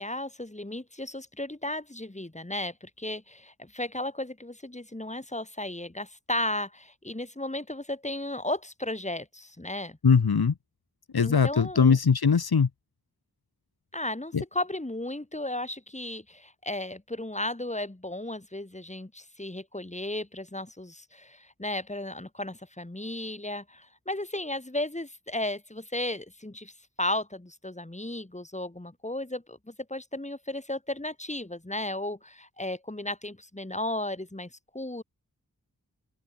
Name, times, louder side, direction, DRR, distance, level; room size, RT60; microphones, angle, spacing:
voice 1, 0.0-10.0 11.2-12.0 13.9-26.7 27.0-35.0, left 1 dB, 20° left, 4.4 m, -34 dB
voice 2, 10.0-10.5 11.1-12.7 14.3-14.4, left 6 dB, 85° left, 1.8 m, -21 dB
open air
wide cardioid pair, 75°, 37 cm